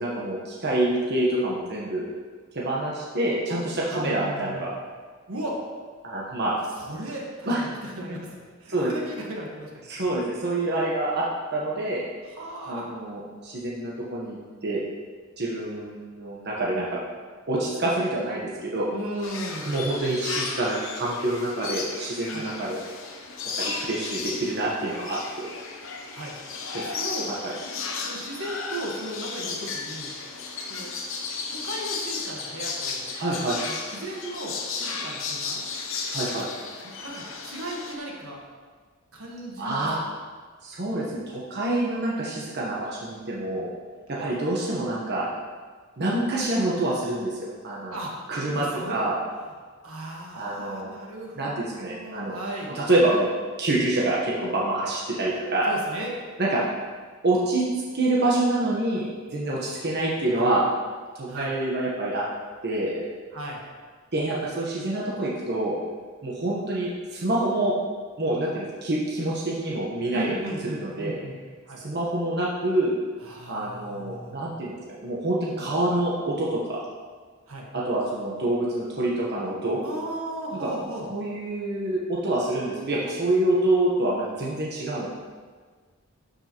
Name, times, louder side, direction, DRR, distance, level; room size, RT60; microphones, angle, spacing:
voice 1, 0.0-2.1 2.5-4.7 6.0-6.5 7.5-7.6 8.7-8.9 9.9-11.3 11.5-12.0 12.6-14.8 15.4-17.0 17.5-18.9 19.6-22.8 23.6-25.5 26.7-26.8 27.4-27.5 33.2-33.6 36.1-36.5 39.6-40.0 40.6-43.7 44.1-45.3 46.0-48.0 48.3-49.2 50.3-50.9 51.4-52.4 52.7-53.3 53.6-55.7 56.4-56.6 57.2-57.7 57.9-60.7 61.1-62.2 62.6-63.0 64.1-65.8 66.2-67.8 68.2-71.2 71.8-73.0 73.5-76.8 77.7-79.8 80.5-80.7 81.1-85.1, right 1 dB, 50° right, -5 dB, 1.1 m, -26 dB
voice 2, 3.9-4.7 5.3-5.6 6.8-10.0 12.4-12.9 18.9-19.7 22.3-22.5 26.1-26.3 26.8-27.3 28.1-30.1 30.7-30.9 31.5-33.1 33.6-35.6 37.0-38.4 39.1-40.1 44.1-44.3 47.9-48.1 48.5-49.0 49.4-49.5 49.8-52.7 55.7-56.1 59.5-59.8 60.2-60.6 61.3-61.5 63.3-63.6 70.1-71.3 71.7-71.8 73.2-74.3 77.5-77.7 79.8-81.1, right 1 dB, 75° right, -1 dB, 1.4 m, -36 dB
sound 1, 19.2-38.0, left 4 dB, 65° left, 0.9 m, -34 dB
12.0 x 5.5 x 3.0 m, 1.5 s
head